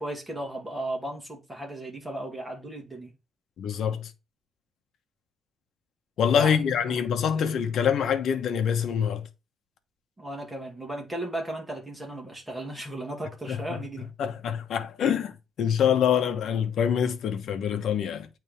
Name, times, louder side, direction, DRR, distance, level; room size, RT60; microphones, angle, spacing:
voice 1, 0.0-3.1 6.4-7.0 7.3-7.6 10.2-14.3, right 1 dB, 10° right, 2.1 m, -36 dB
voice 2, 3.6-4.1 6.2-9.3 13.5-13.8 14.2-18.3, left 8 dB, 60° left, 1.1 m, -25 dB
8.8 x 3.4 x 3.2 m
cardioid pair, 170°, 0 cm